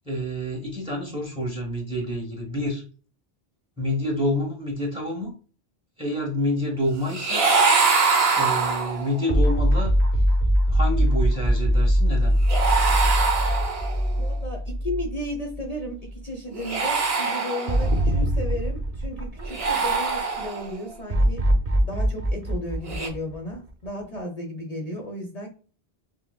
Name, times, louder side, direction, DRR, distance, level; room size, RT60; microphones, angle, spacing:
voice 1, 0.0-2.8 3.8-5.3 6.0-7.5 8.4-9.9 10.7-12.3, left 1 dB, 5° right, 2 dB, 0.8 m, -28 dB
sound 1, 7.1-9.3 12.5-14.1 16.5-18.1 19.4-20.8 22.8-23.1, right 4 dB, 75° right, 1.0 m, -23 dB
sound 2, 9.3-15.6 16.0-16.1 17.7-20.1 21.1-23.9, equal, 40° right, 0.9 m, -22 dB
voice 2, 14.2-21.5 21.8-25.5, left 1 dB, 45° left, 1 dB, 0.6 m, -34 dB
5.7 x 2.0 x 2.2 m, 0.37 s
omnidirectional pair, 1.1 m